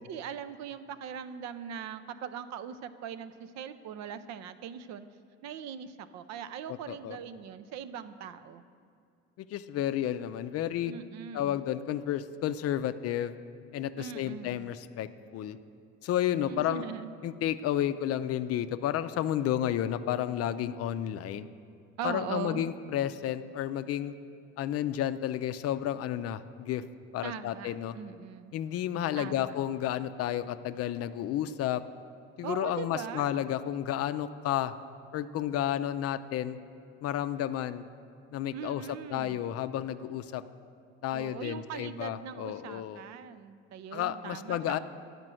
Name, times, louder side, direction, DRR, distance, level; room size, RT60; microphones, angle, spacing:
voice 1, 0.0-5.1 5.4-8.7 10.9-11.6 14.0-14.7 16.5-17.1 22.0-22.7 27.2-28.5 29.2-29.6 32.4-33.4 38.5-39.4 41.1-44.8, right 8 dB, 65° right, 12 dB, 0.6 m, -40 dB
voice 2, 6.7-7.2 9.4-10.9 11.3-13.3 13.7-15.6 16.0-16.8 17.2-21.5 22.0-24.1 24.6-26.8 27.1-27.9 28.5-31.8 32.4-34.7 35.1-36.6 37.0-37.9 38.3-40.4 41.0-43.0 43.9-44.8, left 11 dB, 55° left, 12 dB, 0.5 m, -31 dB
9.7 x 5.2 x 7.6 m, 2.3 s
supercardioid pair, 85°, 29 cm